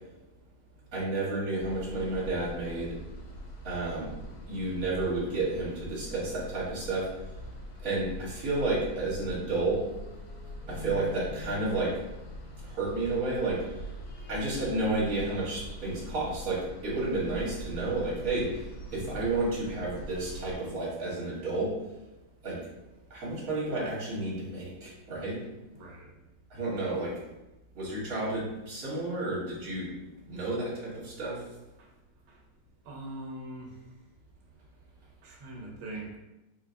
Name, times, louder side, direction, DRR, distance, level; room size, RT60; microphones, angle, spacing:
voice 1, 0.9-3.0 3.6-4.1 4.5-7.3 7.8-9.9 10.7-12.0 12.6-13.7 14.3-22.0 22.4-22.6 23.1-25.4 26.5-27.2 27.7-29.9 30.2-31.6, right 2 dB, 45° right, -7 dB, 1.7 m, -31 dB
sound 1, 1.6-20.6, equal, 75° left, 1.6 m, -43 dB
sound 2, 10.0-13.4, left 2 dB, 25° right, 1.1 m, -45 dB
voice 2, 25.7-26.1 31.8-31.9 32.3-32.4 32.8-33.7 35.2-36.2, right 1 dB, 90° right, -1 dB, 1.6 m, -42 dB
4.2 x 2.8 x 2.5 m, 0.98 s
omnidirectional pair, 2.2 m